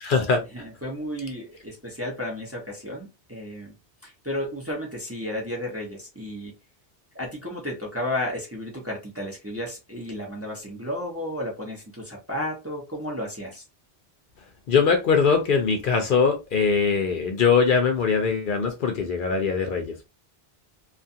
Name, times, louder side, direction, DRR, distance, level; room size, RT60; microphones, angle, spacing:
voice 1, 0.0-0.4 14.7-20.1, left 5 dB, 60° left, 0.7 m, -22 dB
voice 2, 0.5-3.7 4.0-6.5 7.1-13.6, left 1 dB, 15° right, 0.6 m, -33 dB
2.4 x 2.3 x 2.5 m
omnidirectional pair, 1.1 m